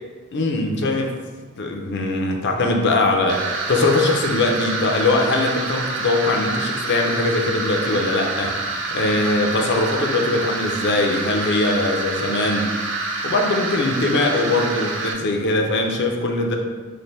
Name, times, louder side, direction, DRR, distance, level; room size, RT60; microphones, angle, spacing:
voice 1, 0.3-1.2 1.6-12.7 13.2-16.6, left 2 dB, 55° left, 3 dB, 0.5 m, -21 dB
sound 1, 3.3-15.1, right 3 dB, 60° right, 0.5 m, -27 dB
3.2 x 2.5 x 4.1 m, 1.4 s
head